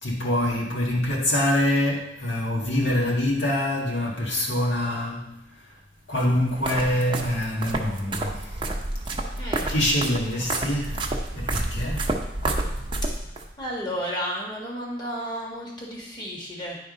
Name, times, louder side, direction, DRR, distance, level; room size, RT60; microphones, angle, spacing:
voice 1, 0.0-5.4 6.1-8.6 9.2-9.3 9.7-11.1 11.3-12.2, left 1 dB, 80° left, -3 dB, 1.9 m, -25 dB
sound 1, 6.2-13.5, right 2 dB, 25° right, 0.8 m, -30 dB
voice 2, 9.4-9.7 13.6-16.8, equal, 25° left, -4 dB, 1.7 m, -32 dB
10.0 x 3.7 x 5.2 m, 0.82 s
head